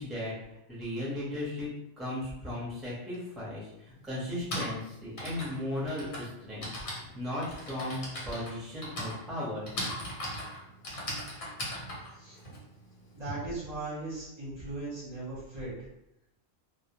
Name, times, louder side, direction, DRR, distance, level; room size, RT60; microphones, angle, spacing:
voice 1, 0.0-1.7 2.0-6.7 7.1-9.7, left 1 dB, ahead, -7 dB, 0.6 m, -36 dB
Typing, 3.1-3.2 4.2-13.3, left 1 dB, 50° left, 0.8 m, -39 dB
voice 2, 13.1-15.7, right 2 dB, 40° right, -9 dB, 0.7 m, -38 dB
2.1 x 2.1 x 2.8 m, 0.85 s
omnidirectional pair, 1.2 m